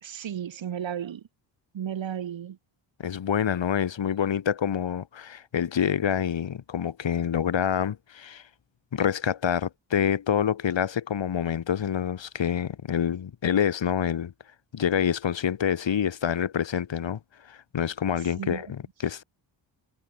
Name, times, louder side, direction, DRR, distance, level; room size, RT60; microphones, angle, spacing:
voice 1, 0.0-1.2 1.7-2.6 18.4-18.6, right 9 dB, 70° right, 3.8 m, -34 dB
voice 2, 3.0-8.4 8.9-14.3 14.7-19.2, left 8 dB, 65° left, 5.0 m, -27 dB
cardioid pair, 80°, 48 cm